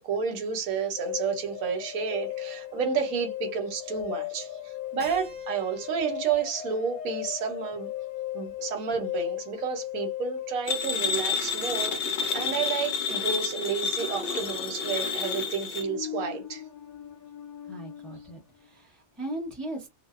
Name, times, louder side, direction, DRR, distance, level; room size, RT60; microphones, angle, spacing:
voice 1, 0.0-7.9 8.3-16.6, right 6 dB, 85° right, 1.1 m, -31 dB
sound 1, 1.0-18.4, left 12 dB, 90° left, 1.1 m, -38 dB
Keyboard (musical), 5.0-8.9, right 4 dB, 40° right, 1.1 m, -51 dB
sound 2, 10.7-15.8, left 5 dB, 65° left, 0.6 m, -30 dB
voice 2, 17.7-19.9, right 1 dB, ahead, 0.6 m, -38 dB
2.6 x 2.0 x 2.3 m
omnidirectional pair, 1.5 m